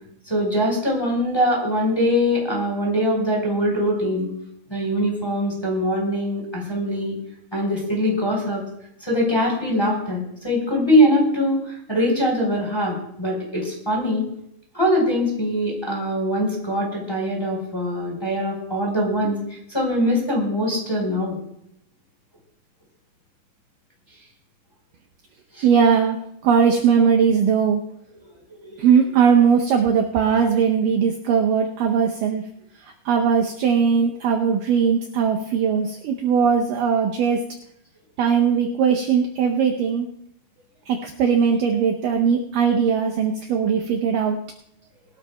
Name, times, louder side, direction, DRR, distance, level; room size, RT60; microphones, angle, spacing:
voice 1, 0.2-4.3 4.7-7.2 7.5-8.6 9.0-14.2 14.7-19.4 19.7-21.4 25.5-25.7 28.5-29.2, equal, 5° left, -2 dB, 3.1 m, -22 dB
voice 2, 25.6-26.2 26.4-27.8 28.8-32.4 32.8-37.5 38.2-40.1 40.9-44.4, right 6 dB, 75° right, 2 dB, 2.1 m, -19 dB
21.5 x 13.5 x 2.2 m, 0.74 s
omnidirectional pair, 4.5 m